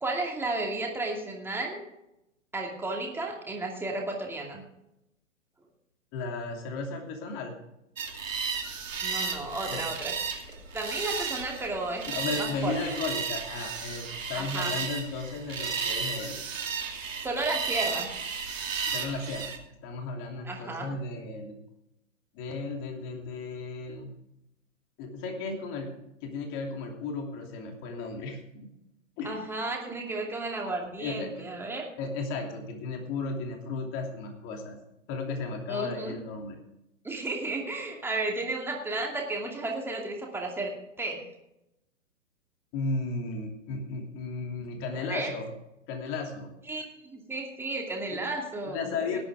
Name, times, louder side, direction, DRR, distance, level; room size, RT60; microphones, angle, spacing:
voice 1, 0.0-1.8 2.5-4.6 9.0-10.1 10.7-12.1 12.4-12.9 14.3-14.7 17.2-18.1 20.4-20.9 29.2-31.9 35.7-36.1 37.0-40.7 41.0-41.2 44.9-45.3 46.7-49.2, right 2 dB, 5° right, 0 dB, 2.5 m, -33 dB
voice 2, 6.1-7.5 9.7-9.8 12.1-16.4 18.8-19.5 19.8-21.6 22.3-24.1 25.0-25.9 26.2-28.7 29.2-29.4 31.0-31.5 32.0-34.8 35.1-36.6 42.7-45.5 45.9-46.5 48.1-48.2 48.7-49.2, left 3 dB, 30° left, 2 dB, 3.0 m, -34 dB
sound 1, 8.0-19.6, right 6 dB, 75° right, 2.8 m, -34 dB
19.0 x 8.6 x 3.7 m, 0.86 s
hypercardioid pair, 125°, 39 cm